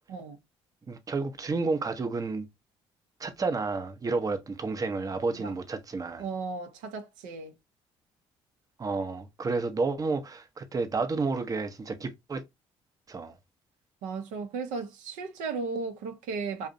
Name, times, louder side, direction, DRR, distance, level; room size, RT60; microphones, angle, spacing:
voice 1, 0.9-2.5 3.2-6.2 8.8-12.4 13.1-13.4, right 3 dB, 25° right, 0.5 m, -31 dB
voice 2, 6.2-7.5 14.0-16.7, right 4 dB, 75° right, 0.5 m, -35 dB
2.5 x 2.0 x 2.5 m
hypercardioid pair, 55°, 13 cm